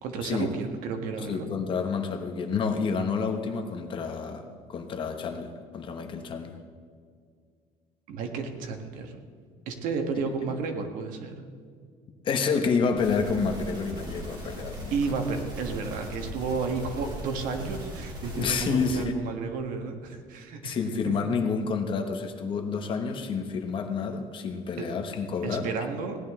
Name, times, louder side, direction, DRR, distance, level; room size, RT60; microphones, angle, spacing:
voice 1, 0.0-1.5 8.1-9.1 9.6-11.3 14.9-20.8 21.3-21.4 25.4-26.2, right 4 dB, 70° right, 4 dB, 1.6 m, -32 dB
voice 2, 1.2-6.6 12.2-14.9 18.4-19.1 20.6-25.7, left 5 dB, 35° left, 5 dB, 1.1 m, -29 dB
sound 1, 13.0-19.0, equal, 30° right, 3.2 m, -39 dB
17.0 x 11.0 x 3.7 m, 2.1 s
cardioid pair, 165°, 14 cm